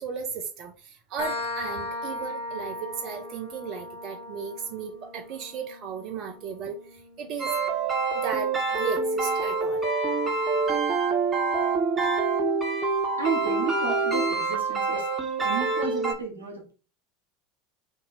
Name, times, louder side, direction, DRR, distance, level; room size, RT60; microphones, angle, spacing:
voice 1, 0.0-7.5 8.1-9.8, right 6 dB, 50° right, 4 dB, 0.6 m, -35 dB
sound 1, 1.2-8.6, left 2 dB, 70° left, 0.9 m, -38 dB
sound 2, 7.4-16.1, right 4 dB, 15° right, 1.3 m, -26 dB
voice 2, 13.2-15.1 15.4-16.7, right 5 dB, 85° right, 0 dB, 1.1 m, -32 dB
2.8 x 2.7 x 4.0 m, 0.35 s
figure-of-eight pair, 75°, 0 cm